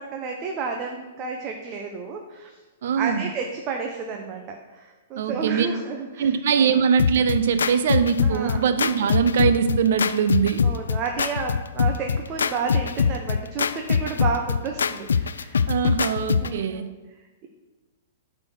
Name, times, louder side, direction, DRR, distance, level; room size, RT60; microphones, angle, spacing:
voice 1, 0.0-2.6 3.0-6.3 6.5-6.7 8.2-8.6 10.6-15.7 16.4-16.9 17.4-17.5, right 5 dB, 35° right, 2 dB, 0.9 m, -31 dB
voice 2, 2.8-3.2 5.1-5.7 6.2-10.6 15.7-16.9, right 7 dB, 65° right, 10 dB, 0.6 m, -22 dB
sound 1, 7.0-16.6, left 6 dB, 85° left, 0.4 m, -24 dB
8.5 x 4.3 x 6.4 m, 1.2 s
hypercardioid pair, 120°, 0 cm